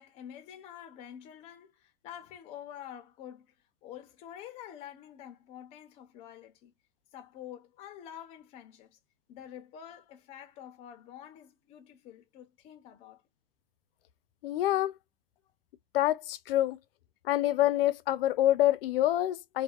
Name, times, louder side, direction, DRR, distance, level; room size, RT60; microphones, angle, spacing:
voice 1, 0.0-3.5 3.8-6.7 7.1-9.0 9.3-13.2, left 10 dB, 20° left, 0.4 m, -47 dB
voice 2, 14.4-14.9 15.9-16.8 17.2-19.6, left 14 dB, 75° left, 0.5 m, -26 dB
2.6 x 2.1 x 2.3 m
supercardioid pair, 160°, 29 cm